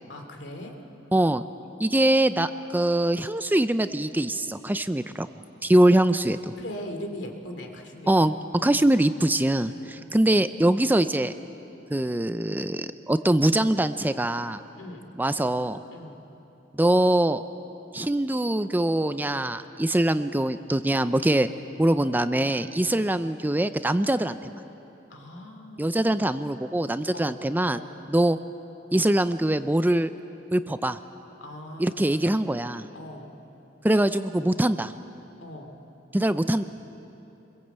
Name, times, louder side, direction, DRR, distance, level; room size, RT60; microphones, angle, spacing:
voice 1, 0.1-0.7 6.6-8.3 8.7-8.9 9.7-10.0 14.7-15.1 15.9-16.2 22.8-23.1 25.1-26.0 27.1-27.4 27.7-28.0 31.4-32.5 32.9-33.3 35.4-35.8, left 1 dB, 70° left, 3 dB, 2.8 m, -40 dB
voice 2, 1.1-1.4 1.8-5.3 5.6-6.5 8.1-8.4 8.6-11.3 11.9-14.6 15.2-15.8 16.8-17.4 17.9-21.5 21.8-24.6 25.8-27.8 28.1-28.4 28.9-30.1 30.5-31.0 31.8-32.8 33.8-34.9 36.1-36.7, right 1 dB, 10° right, 11 dB, 0.5 m, -23 dB
24.5 x 22.0 x 8.1 m, 2.9 s
head